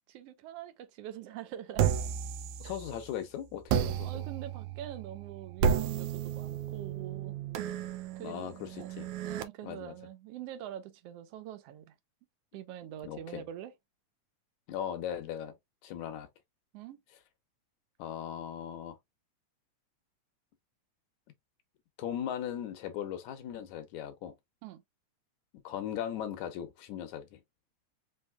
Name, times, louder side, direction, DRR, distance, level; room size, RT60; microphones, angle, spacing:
voice 1, 0.1-1.9 2.6-2.7 4.0-7.4 8.2-8.9 9.2-11.9 12.5-13.7 16.7-17.0 24.6-24.8, right 11 dB, 70° right, 1.6 m, -44 dB
sound 1, 1.8-3.1 3.7-9.4, right 8 dB, 90° right, 2.1 m, -33 dB
voice 2, 2.6-4.3 8.2-9.1 9.6-9.9 13.0-13.4 14.7-15.5 15.8-16.3 18.0-19.0 22.0-24.3 25.6-27.4, left 10 dB, 80° left, 2.2 m, -38 dB
5.6 x 3.3 x 2.2 m
omnidirectional pair, 3.3 m